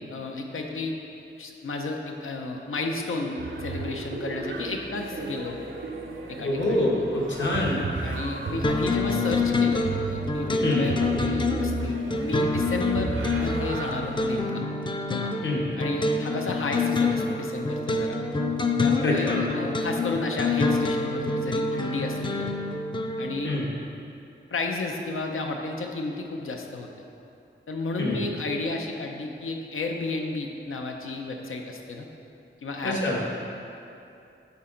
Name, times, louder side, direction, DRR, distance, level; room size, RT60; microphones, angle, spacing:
voice 1, 0.1-0.9 1.4-5.6 6.3-6.8 8.0-14.6 15.1-15.3 15.8-18.2 18.8-22.5 23.2-23.6 24.5-27.0 27.7-32.1 32.6-33.0, left 3 dB, 85° left, 2 dB, 0.7 m, -32 dB
sound 1, 3.4-14.5, right 3 dB, 75° right, 0.6 m, -34 dB
voice 2, 6.4-7.8 10.6-10.8 15.4-15.6 19.0-19.4 23.4-23.6 28.0-28.2 32.8-33.2, left 1 dB, 65° left, -4 dB, 1.3 m, -25 dB
sound 2, 8.6-23.4, left 3 dB, 25° left, 0.4 m, -27 dB
8.7 x 4.1 x 3.8 m, 2.7 s
wide cardioid pair, 85°, 21 cm